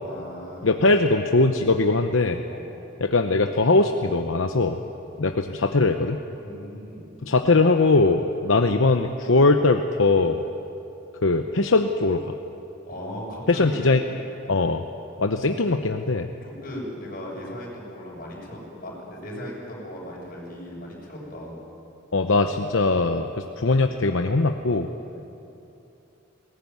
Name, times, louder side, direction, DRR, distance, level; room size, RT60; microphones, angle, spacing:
voice 1, 0.0-0.9 2.5-2.6 5.0-5.1 6.4-7.1 12.9-13.8 14.4-14.6 16.4-21.6 25.0-25.2, equal, 45° left, -3 dB, 6.8 m, -37 dB
voice 2, 0.6-2.4 3.0-4.8 5.2-6.2 7.2-10.4 11.2-12.3 13.5-14.0 14.5-14.8 15.2-16.3 22.1-24.9, left 3 dB, 70° left, 5 dB, 0.9 m, -21 dB
20.5 x 18.5 x 9.5 m, 2.8 s
head